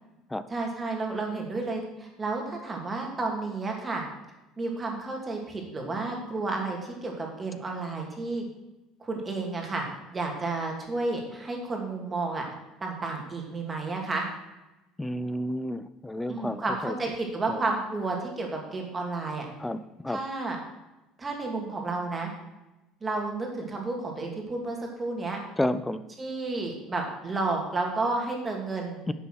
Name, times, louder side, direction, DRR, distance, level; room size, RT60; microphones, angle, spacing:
voice 1, 0.5-4.0 4.6-8.4 9.0-9.8 10.1-12.4 12.8-14.2 16.3-19.5 20.1-20.6 21.2-22.3 23.0-25.4 26.2-29.1, right 3 dB, 20° right, 1 dB, 2.5 m, -31 dB
voice 2, 15.0-16.9 17.5-17.6 19.6-20.2 25.6-26.0 29.1-29.2, left 1 dB, 5° left, 13 dB, 0.5 m, -31 dB
10.5 x 7.0 x 6.4 m, 1.0 s
cardioid pair, 150°, 0 cm